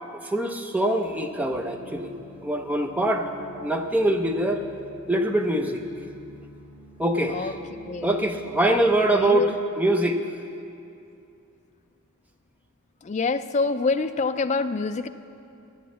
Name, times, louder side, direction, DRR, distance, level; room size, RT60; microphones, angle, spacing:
voice 1, 0.2-2.1 2.4-3.3 3.6-4.6 5.1-5.8 7.0-7.5 8.0-10.2, right 1 dB, 5° right, 3 dB, 0.6 m, -23 dB
Bowed Aquaphone, 1.0-9.4, right 1 dB, 50° left, 2.8 m, -49 dB
voice 2, 7.9-8.2 8.6-8.8 9.1-9.5 13.0-15.1, left 4 dB, 35° left, 10 dB, 0.3 m, -26 dB
10.5 x 8.1 x 8.4 m, 2.6 s
head